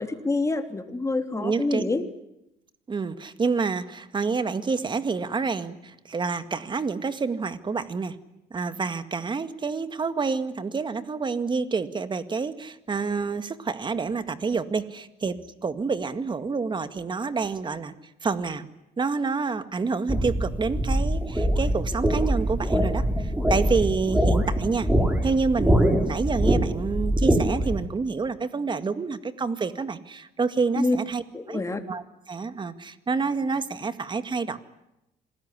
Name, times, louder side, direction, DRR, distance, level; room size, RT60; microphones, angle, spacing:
voice 1, 0.0-2.0 30.8-31.0 31.3-31.8, left 3 dB, 15° left, 6 dB, 3.3 m, -26 dB
voice 2, 1.3-1.8 2.9-8.2 8.5-17.9 18.2-18.7 19.0-24.9 25.2-31.6 31.9-34.6, right 4 dB, 30° right, 11 dB, 2.0 m, -28 dB
sound 1, 20.1-27.8, right 1 dB, 10° right, 5.2 m, -23 dB
27.0 x 20.0 x 9.9 m, 0.88 s
cardioid pair, 110°, 17 cm